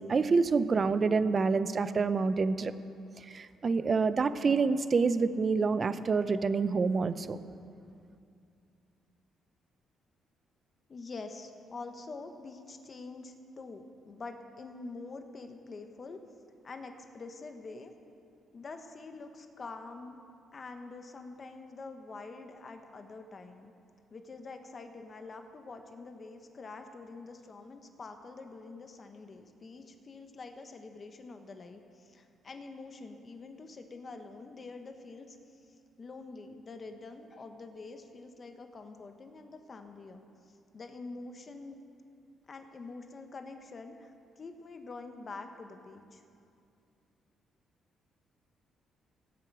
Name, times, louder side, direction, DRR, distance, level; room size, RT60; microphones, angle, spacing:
voice 1, 0.0-2.7 3.3-7.4, right 4 dB, 40° right, 13 dB, 0.6 m, -27 dB
voice 2, 10.9-16.2 16.6-17.9 18.5-20.2 20.5-23.7 24.1-35.4 35.6-40.3 40.7-41.8 42.5-46.2, left 3 dB, 40° left, 6 dB, 1.1 m, -46 dB
17.0 x 8.2 x 6.1 m, 2.5 s
cardioid pair, 90°, 0 cm